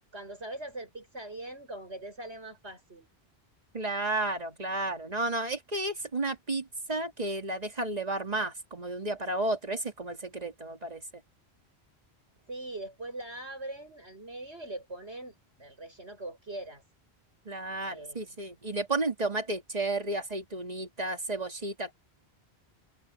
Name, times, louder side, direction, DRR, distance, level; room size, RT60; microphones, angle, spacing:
voice 1, 0.1-3.1 12.5-16.8 17.9-18.2, right 2 dB, 90° right, 7.5 m, -41 dB
voice 2, 3.7-11.0 17.5-21.9, right 2 dB, 40° right, 2.4 m, -32 dB
omnidirectional pair, 1.1 m